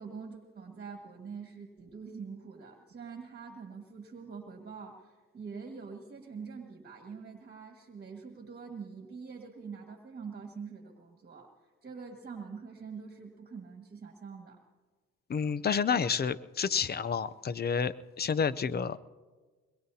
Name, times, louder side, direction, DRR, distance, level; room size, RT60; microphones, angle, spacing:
voice 1, 0.0-14.6, right 5 dB, 35° right, 1 dB, 1.8 m, -45 dB
voice 2, 15.3-19.0, left 6 dB, 35° left, 17 dB, 0.6 m, -30 dB
23.0 x 22.0 x 2.8 m, 1.4 s
cardioid pair, 90°, 30 cm